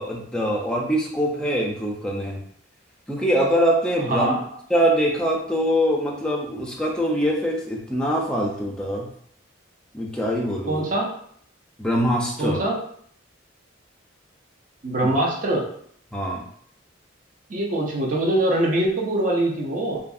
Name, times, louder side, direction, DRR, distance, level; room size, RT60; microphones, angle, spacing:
voice 1, 0.0-2.4 3.1-4.4 4.7-9.1 9.9-10.8 11.8-12.6 15.0-15.1 16.1-16.5, equal, 5° left, -2 dB, 0.4 m, -23 dB
voice 2, 4.1-4.4 10.7-11.1 12.4-12.8 14.8-15.7 17.5-20.0, right 1 dB, 40° right, -2 dB, 0.6 m, -23 dB
2.7 x 2.5 x 2.4 m, 0.63 s
head